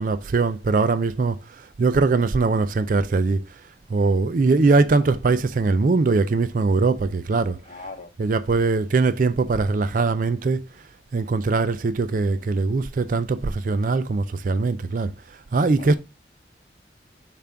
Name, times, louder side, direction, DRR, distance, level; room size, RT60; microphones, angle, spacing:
voice 1, 0.0-1.4 1.8-3.4 3.9-7.6 8.2-10.6 11.1-15.1 15.5-16.0, right 3 dB, 45° right, 0.4 m, -21 dB
voice 2, 7.6-8.1 15.8-16.0, left 3 dB, 40° left, 0.9 m, -40 dB
6.8 x 2.5 x 5.6 m
head